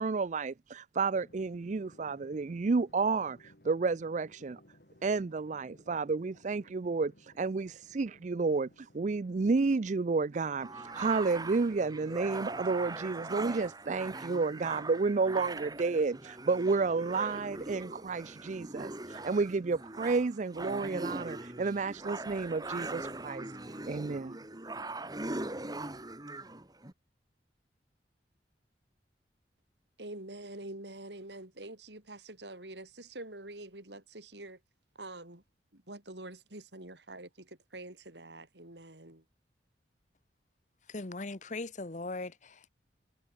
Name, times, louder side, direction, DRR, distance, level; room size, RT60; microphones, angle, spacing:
voice 1, 0.0-4.6 5.0-23.5 23.9-24.4, right 4 dB, 40° right, 0.4 m, -31 dB
Drum, 1.1-13.5, left 1 dB, 60° left, 7.3 m, -62 dB
sound 1, 10.6-26.9, right 2 dB, 20° right, 2.8 m, -41 dB
voice 2, 30.0-34.6 35.0-35.4 35.7-39.2, right 2 dB, 75° right, 4.9 m, -46 dB
voice 3, 40.9-42.7, left 2 dB, 45° left, 1.2 m, -39 dB
head